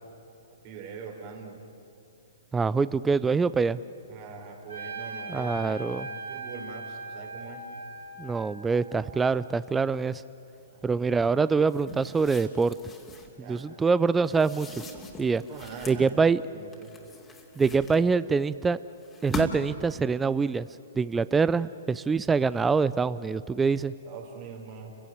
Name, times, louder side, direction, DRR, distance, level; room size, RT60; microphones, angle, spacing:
voice 1, 0.6-1.6 4.1-7.7 10.7-11.4 13.3-13.7 15.5-16.2 16.5-17.0 24.0-24.9, right 5 dB, 45° right, 2 dB, 4.7 m, -43 dB
voice 2, 2.5-3.8 5.3-6.1 8.2-10.2 10.8-12.7 13.5-14.7 15.2-15.4 15.9-16.4 17.6-18.8 19.2-20.7 21.0-23.9, right 4 dB, 10° right, 16 dB, 0.5 m, -25 dB
Trumpet, 4.7-9.4, right 2 dB, 90° right, 5.8 m, -40 dB
sound 1, 11.7-13.4 14.2-16.1 16.7-18.3 19.0-19.8, left 1 dB, 15° left, 2.7 m, -40 dB
29.5 x 16.0 x 9.4 m, 2.9 s
hypercardioid pair, 125°, 0 cm